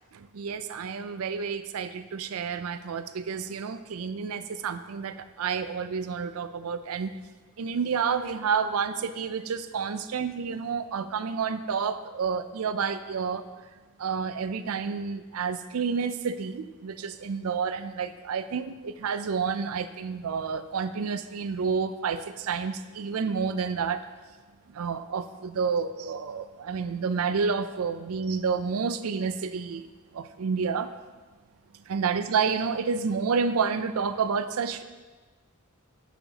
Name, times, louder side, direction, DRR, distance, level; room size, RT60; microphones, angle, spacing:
voice 1, 0.1-7.2 7.6-13.4 14.0-24.0 24.7-29.9 30.1-30.9 31.9-34.8, right 5 dB, 75° right, 12 dB, 0.4 m, -29 dB
10.0 x 6.9 x 2.8 m, 1.3 s
head